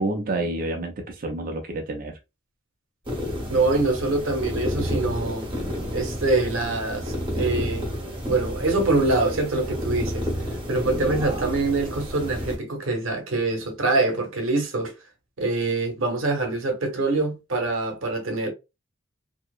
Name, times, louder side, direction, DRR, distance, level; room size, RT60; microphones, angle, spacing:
voice 1, 0.0-2.2, right 2 dB, 45° right, 0.4 m, -28 dB
sound 1, 3.1-12.6, equal, 25° right, 1.0 m, -30 dB
voice 2, 3.5-5.5 5.9-7.9 8.3-10.3 10.7-14.9 15.4-18.5, right 2 dB, 90° right, 0.8 m, -24 dB
2.7 x 2.0 x 2.3 m
head